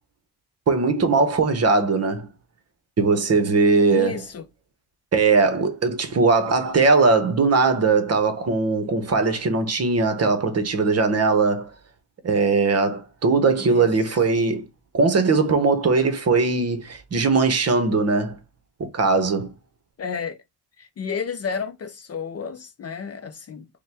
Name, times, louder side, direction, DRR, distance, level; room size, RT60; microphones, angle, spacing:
voice 1, 0.7-2.3 3.0-4.2 5.1-11.7 12.2-14.7 14.9-18.4 18.8-19.5, right 4 dB, 35° right, 0.9 m, -20 dB
voice 2, 3.9-4.4 13.6-14.1 20.0-20.4 20.8-23.7, left 6 dB, 40° left, 0.5 m, -31 dB
5.4 x 2.2 x 3.4 m
cardioid pair, 135°, 41 cm